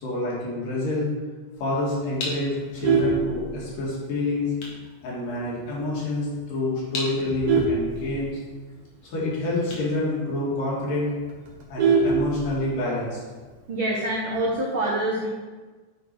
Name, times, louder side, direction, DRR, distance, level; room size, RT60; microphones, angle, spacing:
voice 1, 0.0-1.1 1.6-4.5 5.0-8.4 9.0-11.1 11.7-13.2, left 2 dB, 85° left, -6 dB, 3.8 m, -27 dB
sound 1, 2.2-11.0, left 2 dB, 60° left, 2.5 m, -40 dB
Vehicle horn car horn honking, 2.5-4.0 4.5-4.7 5.1-5.2 5.6-5.7 6.0-6.3 6.9-8.7 9.1-9.2 9.5-9.6 10.0-10.1 10.4-10.5 10.8-12.8 14.0-14.5, right 4 dB, 60° right, 1.6 m, -24 dB
voice 2, 13.7-15.3, right 1 dB, 85° right, -4 dB, 1.1 m, -25 dB
9.7 x 4.0 x 4.6 m, 1.3 s
omnidirectional pair, 3.8 m